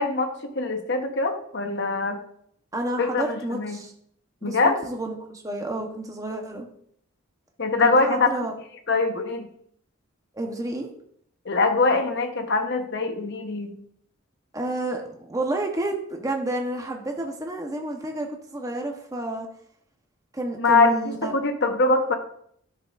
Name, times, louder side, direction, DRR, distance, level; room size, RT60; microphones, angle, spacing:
voice 1, 0.0-2.2 3.0-3.8 4.4-4.8 7.6-8.3 8.9-9.5 11.4-13.8 20.6-21.0 21.2-22.1, left 3 dB, 55° left, 5 dB, 1.0 m, -23 dB
voice 2, 2.7-3.9 4.4-6.7 7.8-8.5 10.3-10.9 14.5-19.5 20.3-21.3, right 2 dB, 15° right, 2 dB, 0.9 m, -30 dB
10.0 x 6.7 x 2.5 m, 0.66 s
head